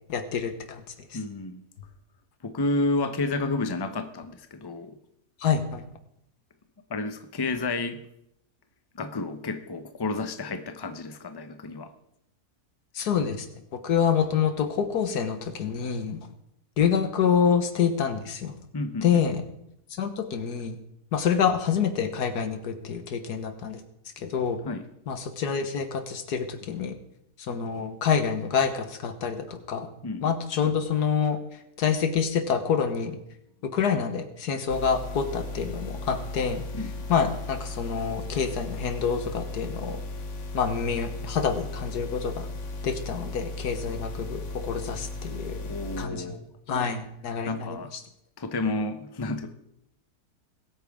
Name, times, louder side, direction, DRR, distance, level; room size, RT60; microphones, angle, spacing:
voice 1, 0.1-0.8 5.4-5.8 13.0-13.5 13.8-16.3 16.8-18.5 19.0-19.4 19.9-20.8 21.1-23.8 24.2-24.6 25.1-27.0 27.5-29.9 30.2-31.4 31.8-33.2 33.7-36.6 37.1-40.0 40.5-42.5 42.8-45.6 46.0-46.3 46.7-47.8, left 7 dB, 85° left, 8 dB, 1.8 m, -27 dB
voice 2, 1.1-1.6 2.4-5.0 6.9-8.0 8.9-11.9 18.7-19.2 24.6-24.9 30.0-30.3 36.7-37.1 45.6-46.5 47.5-47.9 48.4-49.5, left 2 dB, 20° left, 8 dB, 0.7 m, -31 dB
sound 1, 34.7-46.1, left 2 dB, 55° left, 1.4 m, -36 dB
21.0 x 8.9 x 3.6 m, 0.77 s
omnidirectional pair, 1.6 m